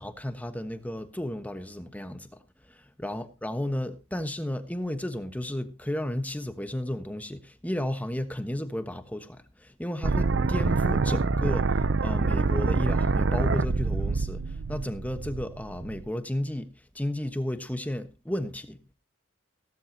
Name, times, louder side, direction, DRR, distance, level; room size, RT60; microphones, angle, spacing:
voice 1, 0.0-2.4 3.0-16.7 16.9-18.8, left 1 dB, 10° left, 1.2 m, -33 dB
sound 1, 10.0-16.0, right 4 dB, 65° right, 0.6 m, -26 dB
16.5 x 13.0 x 2.9 m
head